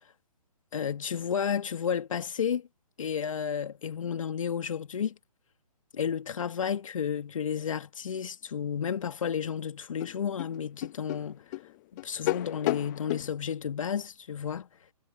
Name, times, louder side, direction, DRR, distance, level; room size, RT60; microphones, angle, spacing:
voice 1, 0.7-2.7 3.0-5.2 5.9-11.5 12.0-14.7, left 7 dB, 55° left, 2.1 m, -32 dB
sound 1, 9.4-9.5 10.0-13.3, left 20 dB, 30° left, 1.4 m, -33 dB
figure-of-eight pair, 135°, 20 cm